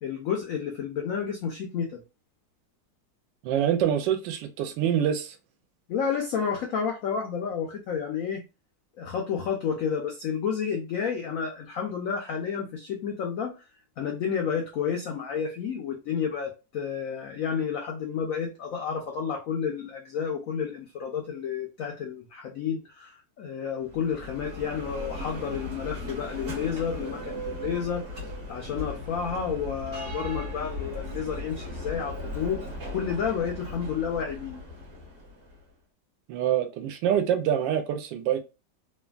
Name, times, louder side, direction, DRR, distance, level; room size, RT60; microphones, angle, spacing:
voice 1, 0.0-2.0 5.9-8.4 9.0-13.6 14.0-28.0 28.5-32.7 32.9-34.6, left 7 dB, 85° left, 0.7 m, -31 dB
voice 2, 3.4-5.4 36.3-38.4, right 10 dB, 85° right, 1.3 m, -25 dB
Bell, 23.8-35.6, left 1 dB, 40° right, 0.9 m, -37 dB
3.2 x 2.2 x 2.3 m
omnidirectional pair, 2.0 m